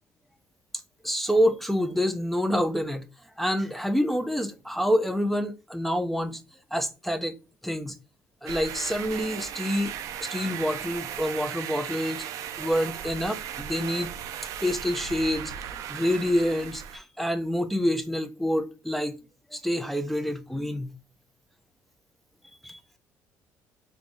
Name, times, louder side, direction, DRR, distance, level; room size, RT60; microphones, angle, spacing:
voice 1, 1.0-3.0 3.4-6.4 6.7-7.3 7.6-7.9 8.4-9.9 10.2-12.2 12.6-14.1 14.6-15.5 15.9-19.1 19.5-20.9 22.6-22.8, equal, 5° left, 0.5 m, -27 dB
sound 1, 8.5-17.0, right 9 dB, 70° right, 0.4 m, -37 dB
3.5 x 2.6 x 3.7 m
cardioid pair, 90°, 6 cm